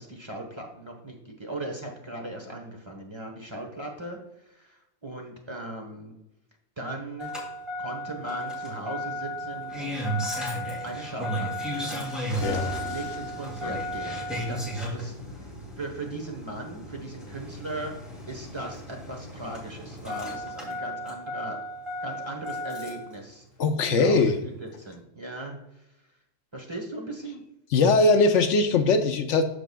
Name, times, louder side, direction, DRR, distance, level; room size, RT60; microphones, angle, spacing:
voice 1, 0.0-6.2 6.8-7.3 7.8-10.2 10.8-17.9 18.3-21.6 22.0-23.4 23.9-25.8 26.5-27.4, right 2 dB, 25° right, 1 dB, 1.1 m, -38 dB
Engine starting, 7.2-23.1 24.4-24.5, equal, ahead, 2.4 m, -34 dB
voice 2, 12.4-12.7 23.6-24.4 27.7-29.4, left 3 dB, 75° left, 8 dB, 0.9 m, -21 dB
13.0 x 4.9 x 2.3 m, 0.88 s
omnidirectional pair, 1.3 m